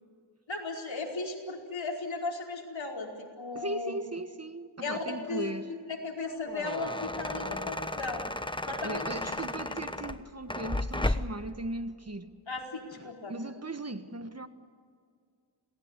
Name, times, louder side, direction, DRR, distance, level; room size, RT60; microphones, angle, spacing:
voice 1, 0.5-4.0 4.8-5.5 5.9-8.3 8.7-9.4 12.5-13.3, left 3 dB, 75° left, 0 dB, 4.8 m, -36 dB
voice 2, 3.5-5.7 7.2-7.6 8.8-12.3 13.0-14.5, right 1 dB, 35° right, 9 dB, 1.6 m, -38 dB
sound 1, 6.3-11.5, left 1 dB, 10° left, 1.1 m, -34 dB
28.0 x 19.5 x 8.3 m, 2.1 s
wide cardioid pair, 60°, 46 cm